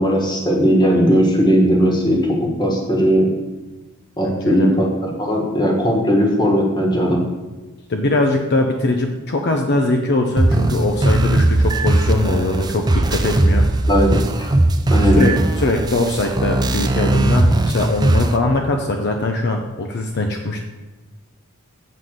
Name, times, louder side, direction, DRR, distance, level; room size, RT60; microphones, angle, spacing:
voice 1, 0.0-3.3 4.2-7.2 13.9-14.5 14.9-15.3, equal, 20° left, -1 dB, 1.5 m, -17 dB
voice 2, 4.2-4.7 7.9-13.7 15.1-20.6, left 2 dB, 55° left, 3 dB, 0.6 m, -21 dB
sound 1, 10.4-18.4, right 1 dB, 20° right, 0.4 m, -18 dB
7.5 x 3.8 x 6.4 m, 1.2 s
head